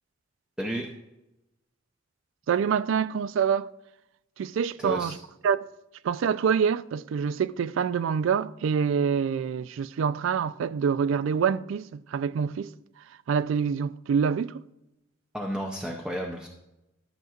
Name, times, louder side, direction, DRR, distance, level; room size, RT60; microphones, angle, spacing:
voice 1, 0.6-0.9 4.8-5.2 15.3-16.5, equal, 5° right, 0.6 m, -32 dB
voice 2, 2.5-3.7 4.4-5.2 5.4-5.7 6.0-12.7 13.3-14.6, right 7 dB, 70° right, 0.3 m, -26 dB
12.0 x 6.5 x 2.4 m
head